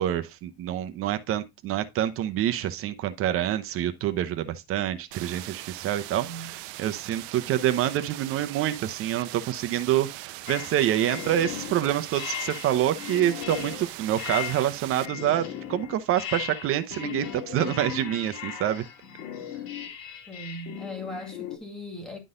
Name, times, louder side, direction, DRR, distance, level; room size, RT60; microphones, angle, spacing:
voice 1, 0.0-18.8, right 12 dB, 50° right, 0.8 m, -27 dB
sound 1, 5.1-15.1, right 19 dB, 80° right, 0.6 m, -40 dB
voice 2, 6.2-6.5 20.3-22.2, left 1 dB, ahead, 2.3 m, -39 dB
sound 2, 10.5-21.6, left 9 dB, 75° left, 2.1 m, -37 dB
11.0 x 3.9 x 3.8 m
cardioid pair, 145°, 29 cm